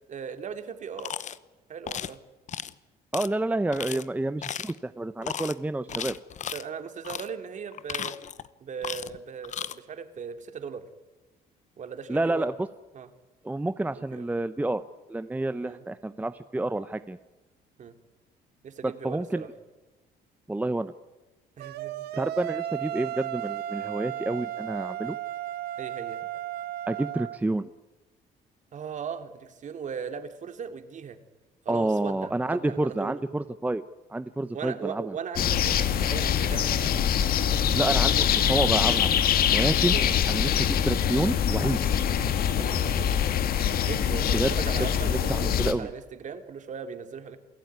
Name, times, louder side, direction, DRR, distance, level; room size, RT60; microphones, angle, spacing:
voice 1, 0.1-1.1 1.7-2.2 3.9-4.0 5.9-6.0 6.5-8.2 8.6-10.8 11.8-12.5 12.9-13.1 13.9-14.3 15.6-15.8 17.8-17.9 18.6-19.5 21.6-21.9 25.8-26.2 28.7-31.2 31.6-33.2 34.5-36.7 39.9-40.2 42.1-42.3 42.6-43.1 43.8-47.4, right 6 dB, 45° right, 8 dB, 2.8 m, -38 dB
sound 1, 1.0-1.4 1.9-2.1 2.5-2.7 3.1-3.3 3.7-4.0 4.4-4.8 5.2-5.5 5.9-6.6 7.0-7.3 7.7-8.5 8.8-9.2 9.4-9.7, left 9 dB, 45° left, 0.9 m, -35 dB
voice 2, 3.1-6.1 12.1-12.5 13.4-14.8 15.1-17.2 18.8-19.4 20.5-20.9 22.2-25.2 26.9-27.7 31.7-33.8 34.1-35.2 37.7-39.1 39.5-40.0 40.3-42.1 44.3-44.5 45.0-45.9, right 2 dB, 10° right, 12 dB, 0.7 m, -29 dB
sound 2, 21.6-27.4, right 12 dB, 70° right, 1.1 m, -34 dB
sound 3, 35.4-45.7, left 9 dB, 60° left, 1.9 m, -24 dB
28.0 x 16.5 x 9.5 m, 1.1 s
cardioid pair, 110°, 17 cm